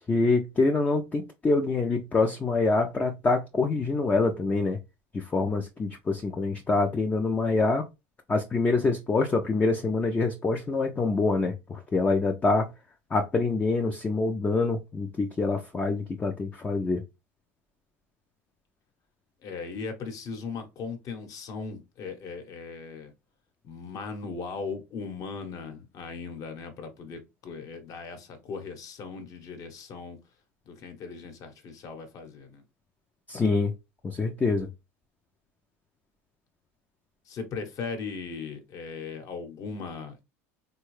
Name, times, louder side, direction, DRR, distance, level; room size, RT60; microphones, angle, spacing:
voice 1, 0.1-4.8 5.1-7.8 8.3-12.7 13.1-17.0 33.3-33.7 34.0-34.7, left 3 dB, 20° left, 0.5 m, -25 dB
voice 2, 19.4-23.1 23.6-30.2 30.7-32.6 37.3-40.2, left 5 dB, 45° left, 1.0 m, -38 dB
3.5 x 2.2 x 3.1 m
supercardioid pair, 100°, 8 cm